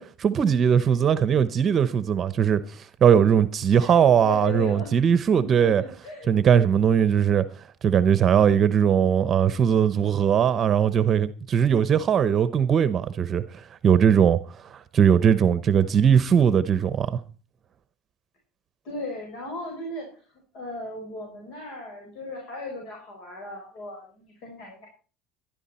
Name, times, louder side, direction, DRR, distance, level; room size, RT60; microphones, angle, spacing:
voice 1, 0.0-5.8 6.3-7.4 7.8-13.4 13.8-14.4 14.7-17.2, right 8 dB, 35° right, 0.8 m, -20 dB
voice 2, 3.8-4.9 5.4-6.3 15.7-16.2 18.8-20.2 20.5-24.9, left 2 dB, 65° left, 5.6 m, -37 dB
14.5 x 12.0 x 4.3 m
supercardioid pair, 120°, 0 cm